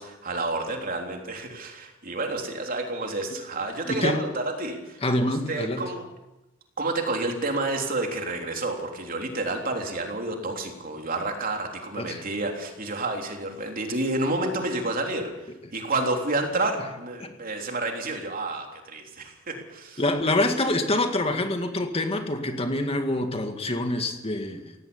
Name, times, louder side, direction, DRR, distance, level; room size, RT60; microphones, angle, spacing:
voice 1, 0.0-6.0 6.8-15.3 15.7-20.0, right 2 dB, 45° right, 3 dB, 3.5 m, -30 dB
voice 2, 3.8-4.2 5.0-5.9 12.0-12.2 17.2-17.3 20.0-24.8, left 1 dB, 30° left, 5 dB, 2.0 m, -26 dB
17.5 x 17.0 x 9.8 m, 0.99 s
head